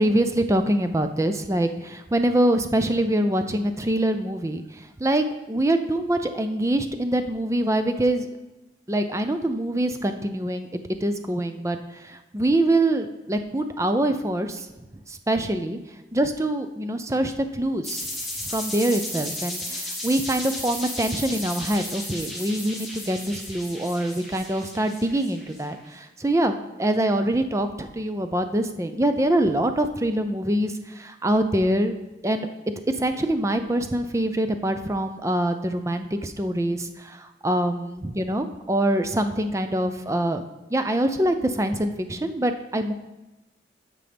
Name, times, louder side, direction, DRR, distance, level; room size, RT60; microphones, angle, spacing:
voice 1, 0.0-8.3 8.9-14.7 15.1-15.8 16.1-18.0 18.4-32.0 32.2-32.5 33.0-40.4 40.7-42.9, right 1 dB, 15° right, 8 dB, 0.4 m, -24 dB
sound 1, 17.8-25.6, left 1 dB, ahead, 1.9 m, -34 dB
13.5 x 5.3 x 3.4 m, 1.1 s
head